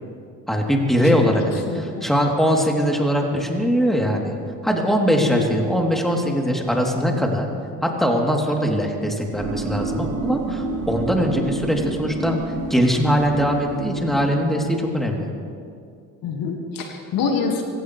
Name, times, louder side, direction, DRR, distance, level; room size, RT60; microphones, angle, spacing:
voice 1, 0.5-4.3 4.6-7.5 7.8-12.4 12.7-15.3, equal, ahead, 0 dB, 3.2 m, -21 dB
voice 2, 1.7-2.1 5.2-5.5 16.2-17.6, left 5 dB, 60° left, 3 dB, 2.1 m, -26 dB
sound 1, 9.4-14.4, right 3 dB, 40° right, 3.1 m, -29 dB
25.5 x 17.0 x 3.3 m, 2.3 s
hypercardioid pair, 70°, 39 cm